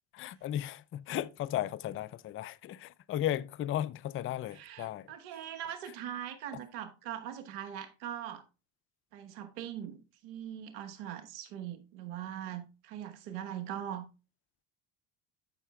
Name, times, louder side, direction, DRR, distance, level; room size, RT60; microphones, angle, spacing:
voice 1, 0.1-5.1, left 12 dB, 30° left, 0.3 m, -35 dB
voice 2, 4.5-8.4 9.1-14.0, right 10 dB, 85° right, 1.2 m, -41 dB
12.0 x 5.5 x 2.3 m
supercardioid pair, 75°, 49 cm